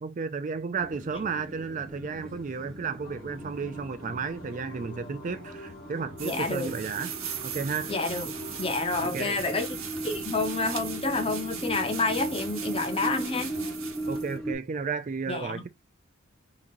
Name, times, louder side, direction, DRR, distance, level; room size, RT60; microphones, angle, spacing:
voice 1, 0.0-7.2 7.4-7.9 9.1-9.4 14.0-15.7, right 5 dB, 35° right, 0.3 m, -33 dB
sound 1, 0.8-14.5, right 1 dB, 5° left, 1.0 m, -38 dB
sound 2, 3.0-13.8, equal, 45° left, 1.3 m, -47 dB
voice 2, 6.2-6.7 7.9-9.7 10.0-13.5 15.3-15.6, left 3 dB, 25° left, 0.6 m, -29 dB
sound 3, 6.2-14.4, right 8 dB, 80° right, 1.0 m, -39 dB
3.8 x 3.0 x 2.6 m
head